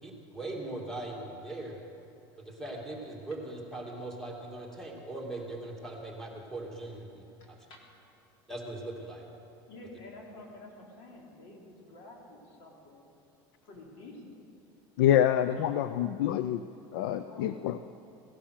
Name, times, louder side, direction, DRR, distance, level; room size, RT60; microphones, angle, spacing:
voice 1, 0.0-1.8 2.5-7.6 8.5-9.3, right 2 dB, 5° left, -3 dB, 2.4 m, -40 dB
voice 2, 9.7-13.0 13.6-14.4 15.5-15.9 17.3-17.8, left 2 dB, 65° left, -1 dB, 3.5 m, -49 dB
voice 3, 15.0-16.7 16.9-17.8, left 11 dB, 85° left, 12 dB, 0.5 m, -26 dB
16.5 x 11.5 x 6.5 m, 2.8 s
supercardioid pair, 140°, 11 cm